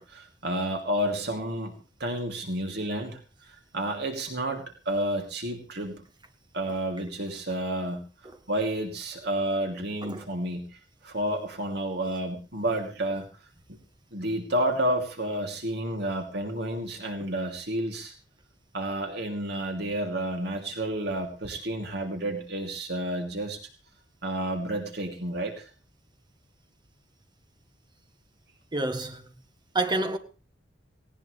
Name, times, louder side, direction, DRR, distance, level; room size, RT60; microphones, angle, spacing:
voice 1, 0.0-3.2 3.5-5.9 6.5-8.0 8.5-10.7 11.0-13.3 14.1-18.1 18.7-23.6 24.2-25.6, right 1 dB, 65° right, 2.8 m, -30 dB
voice 2, 28.7-29.3 29.7-30.2, right 2 dB, 25° right, 1.6 m, -28 dB
18.5 x 18.0 x 3.3 m
head